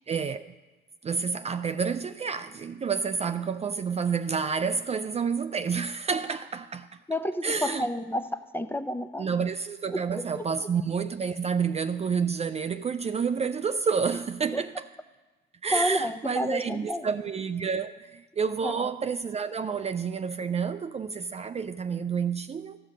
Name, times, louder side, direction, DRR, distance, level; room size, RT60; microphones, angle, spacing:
voice 1, 0.1-0.5 1.0-7.0 7.4-7.9 9.2-14.8 15.6-22.8, right 6 dB, 30° right, 0.4 m, -29 dB
voice 2, 7.1-9.3 9.9-10.4 14.5-14.6 15.7-17.1 18.6-18.9, equal, 10° left, 0.6 m, -30 dB
14.5 x 5.7 x 6.3 m
cardioid pair, 90°, 20 cm